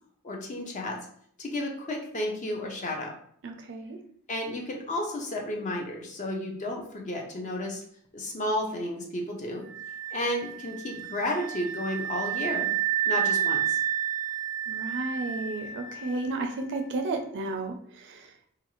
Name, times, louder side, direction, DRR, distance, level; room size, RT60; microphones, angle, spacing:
voice 1, 0.2-1.0 1.4-3.1 4.3-7.8 8.1-9.6 10.1-12.7 13.1-13.8, left 1 dB, 35° left, 0 dB, 0.5 m, -32 dB
voice 2, 3.4-4.0 14.7-18.5, right 2 dB, 55° right, 4 dB, 0.4 m, -33 dB
sound 1, 9.6-16.4, right 10 dB, 15° left, 0.9 m, -30 dB
2.5 x 2.3 x 2.9 m, 0.62 s
head